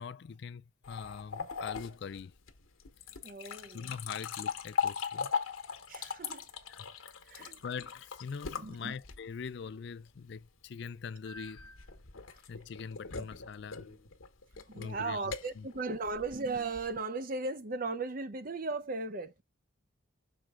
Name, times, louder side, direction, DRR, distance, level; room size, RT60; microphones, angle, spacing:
voice 1, 0.0-2.3 3.7-5.3 6.7-6.9 7.4-11.7 12.5-13.9 14.8-15.7, left 6 dB, 55° left, 0.4 m, -43 dB
sound 1, 0.8-9.5 11.2-17.0, left 6 dB, 85° left, 1.2 m, -39 dB
voice 2, 3.2-3.9 5.9-6.5 7.3-7.6 8.5-8.9 12.3-12.4 14.7-19.4, right 3 dB, 40° right, 0.7 m, -37 dB
6.4 x 4.4 x 3.6 m
head